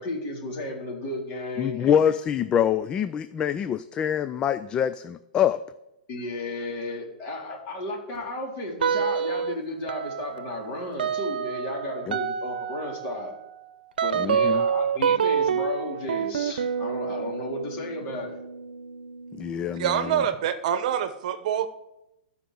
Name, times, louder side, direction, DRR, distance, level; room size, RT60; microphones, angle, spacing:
voice 1, 0.0-2.0 6.1-13.3 14.0-18.4, left 2 dB, 35° left, -1 dB, 3.8 m, -34 dB
voice 2, 1.6-5.6 12.1-12.2 14.2-14.7 19.3-20.2, left 9 dB, 20° left, 13 dB, 0.3 m, -25 dB
sound 1, 8.8-9.5 9.9-20.2, right 7 dB, 85° right, 0.8 m, -28 dB
voice 3, 19.8-21.7, right 9 dB, 55° right, 11 dB, 1.0 m, -25 dB
14.0 x 5.6 x 7.7 m, 0.89 s
hypercardioid pair, 150°, 5 cm